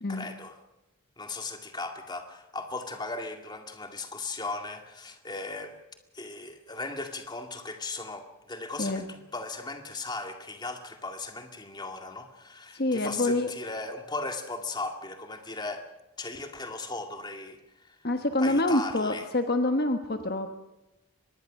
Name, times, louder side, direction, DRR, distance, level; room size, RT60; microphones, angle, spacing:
voice 1, 0.1-0.6 1.2-5.8 6.1-15.9 16.2-18.0 18.4-19.3, left 3 dB, 20° left, 5 dB, 2.1 m, -37 dB
voice 2, 12.7-13.5 18.0-20.5, left 2 dB, 45° left, 7 dB, 1.2 m, -26 dB
24.0 x 20.5 x 6.5 m, 0.97 s
head